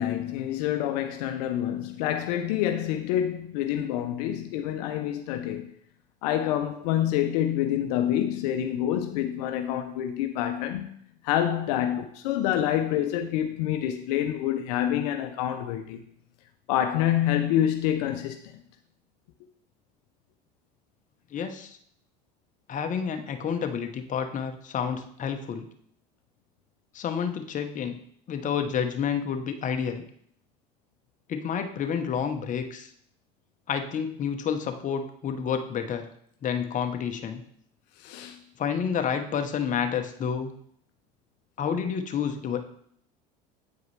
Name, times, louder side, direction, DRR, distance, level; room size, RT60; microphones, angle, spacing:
voice 1, 0.0-5.7 6.2-10.9 11.2-16.0 16.7-18.4 38.0-38.4, left 11 dB, 75° left, 0.6 m, -27 dB
voice 2, 21.3-21.8 22.7-25.7 26.9-28.0 28.3-30.0 31.3-32.9 33.7-36.1 36.4-37.4 38.6-40.5 41.6-42.6, left 7 dB, 40° left, 0.9 m, -29 dB
8.3 x 4.7 x 3.2 m
hypercardioid pair, 85°, 21 cm